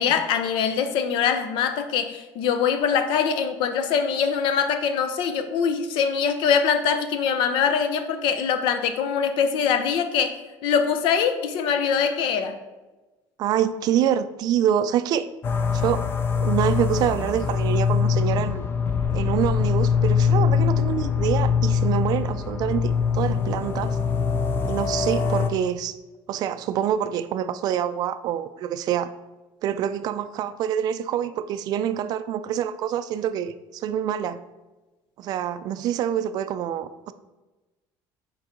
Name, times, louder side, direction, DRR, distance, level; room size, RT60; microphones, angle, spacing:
voice 1, 0.0-12.6, left 7 dB, 70° left, 9 dB, 0.7 m, -23 dB
voice 2, 13.4-15.3 15.7-16.1 16.4-18.6 19.1-24.0 24.6-26.0 26.3-29.1 29.6-34.4 35.2-37.1, right 10 dB, 50° right, 12 dB, 0.3 m, -26 dB
sound 1, 15.4-25.5, left 6 dB, 25° left, 0.4 m, -23 dB
6.2 x 4.6 x 4.4 m, 1.1 s
cardioid pair, 160°, 9 cm